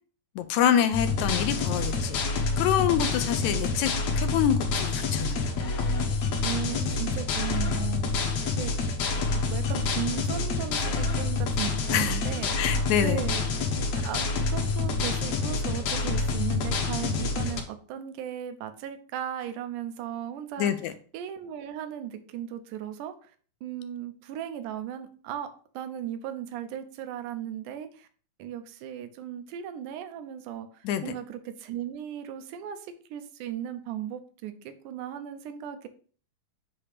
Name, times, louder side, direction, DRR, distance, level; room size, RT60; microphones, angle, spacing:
voice 1, 0.4-3.9 4.2-5.5 11.9-12.2 12.6-13.2 20.6-20.9 30.8-31.0, left 9 dB, 80° left, 10 dB, 1.8 m, -26 dB
sound 1, 0.9-17.6, left 4 dB, 65° left, 1.9 m, -27 dB
voice 2, 6.4-8.3 8.6-8.7 9.2-12.6 13.0-13.5 14.0-23.3 23.6-25.5 25.7-28.1 28.4-35.9, right 10 dB, 80° right, 9 dB, 2.2 m, -36 dB
8.5 x 2.9 x 5.0 m, 0.42 s
omnidirectional pair, 3.6 m